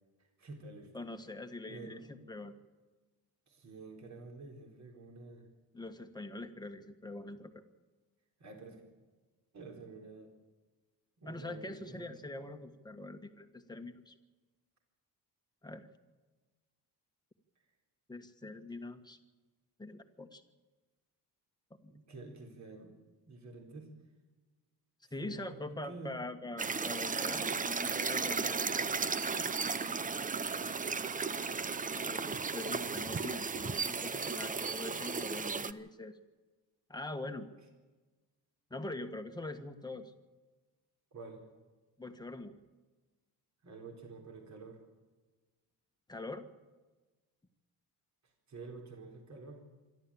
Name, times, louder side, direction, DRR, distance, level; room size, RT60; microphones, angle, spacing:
voice 1, 0.4-0.9 1.7-2.1 3.5-5.5 8.4-8.8 9.5-10.3 11.2-12.1 18.4-18.5 21.9-22.9 23.3-23.9 25.0-26.2 27.6-27.7 41.1-41.4 43.6-44.8 48.5-49.6, right 3 dB, 40° right, 3 dB, 4.1 m, -49 dB
voice 2, 0.9-2.5 5.7-7.6 11.2-14.1 15.6-15.9 18.1-19.2 19.8-20.4 21.8-21.9 25.1-28.6 31.9-36.2 36.9-37.5 38.7-40.1 42.0-42.5 46.1-46.5, left 2 dB, 10° left, 6 dB, 1.6 m, -43 dB
sound 1, 26.6-35.7, right 5 dB, 20° right, 0.6 m, -35 dB
26.5 x 12.0 x 8.7 m, 1.3 s
cardioid pair, 140°, 40 cm